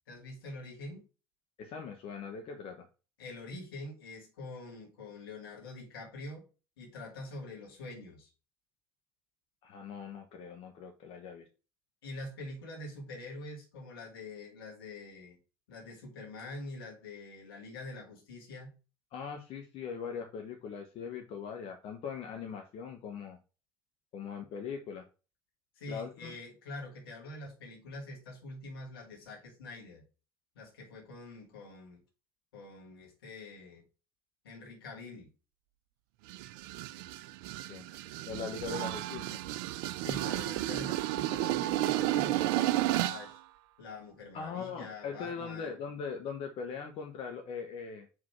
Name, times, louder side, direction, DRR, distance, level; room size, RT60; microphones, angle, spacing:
voice 1, 0.1-1.1 3.2-6.4 6.8-8.3 12.0-15.4 15.7-18.7 25.8-30.0 30.6-32.0 32.5-33.8 34.4-35.3 38.7-38.9 40.0-43.4 43.8-45.7, left 2 dB, 75° left, 2.3 m, -45 dB
voice 2, 1.6-2.9 9.6-11.5 19.1-23.4 24.1-25.0 25.9-26.3 37.7-37.8 38.3-39.4 44.3-48.1, left 6 dB, 50° left, 1.1 m, -40 dB
sound 1, 36.3-43.3, right 15 dB, 65° right, 0.4 m, -32 dB
4.9 x 4.0 x 5.8 m
hypercardioid pair, 65°, 12 cm